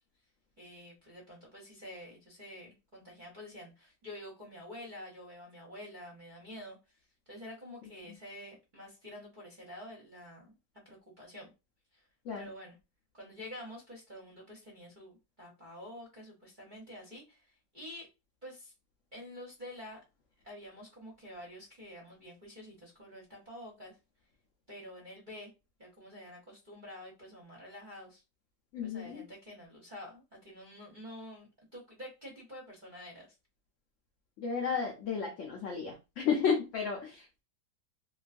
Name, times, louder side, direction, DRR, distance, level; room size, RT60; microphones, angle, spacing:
voice 1, 0.6-6.8 7.3-10.5 10.8-11.5 11.9-12.1 12.4-12.7 13.1-18.1 18.4-18.7 19.1-20.0 20.4-24.0 24.7-25.5 25.8-28.2 28.8-33.3, left 1 dB, 45° right, -2 dB, 0.6 m, -48 dB
voice 2, 28.7-29.2 34.4-37.4, left 6 dB, 85° left, 2 dB, 0.6 m, -33 dB
2.9 x 2.3 x 2.4 m, 0.27 s
omnidirectional pair, 1.9 m